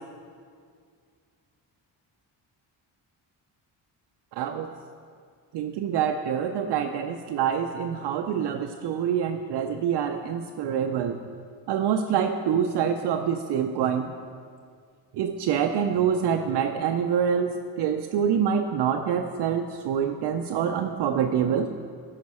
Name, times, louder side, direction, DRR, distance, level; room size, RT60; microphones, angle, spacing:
voice 1, 4.4-4.7 5.5-11.2 11.7-14.1 15.1-21.7, right 8 dB, 70° right, 5 dB, 0.5 m, -26 dB
9.3 x 5.2 x 4.2 m, 2.1 s
cardioid pair, 90°, 44 cm